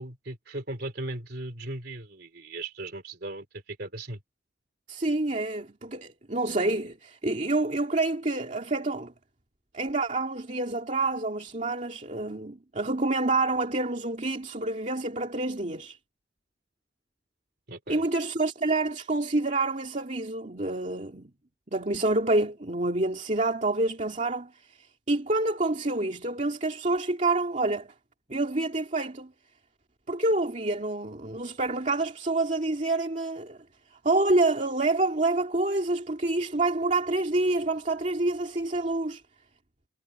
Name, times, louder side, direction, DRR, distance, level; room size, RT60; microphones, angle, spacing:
voice 1, 0.0-4.2 17.7-18.0, right 2 dB, 55° right, 3.2 m, -37 dB
voice 2, 4.9-9.1 9.7-16.0 17.9-21.3 21.7-27.9 28.3-29.3 30.1-33.6 33.9-39.2, right 2 dB, 40° right, 2.3 m, -27 dB
head